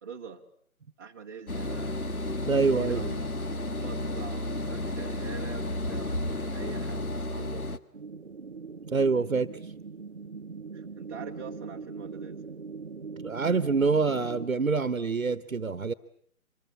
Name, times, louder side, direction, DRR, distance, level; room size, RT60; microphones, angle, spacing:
voice 1, 0.0-0.4 1.0-2.0 2.6-3.3 3.8-7.8 10.7-12.4, right 5 dB, 15° right, 1.3 m, -44 dB
sound 1, 1.5-7.8, left 1 dB, 75° left, 1.7 m, -32 dB
voice 2, 2.5-3.0 8.9-9.5 13.2-15.9, right 4 dB, 60° right, 1.3 m, -26 dB
sound 2, 7.9-14.5, right 5 dB, 45° right, 1.0 m, -41 dB
25.5 x 22.0 x 8.6 m
figure-of-eight pair, 150°, 44 cm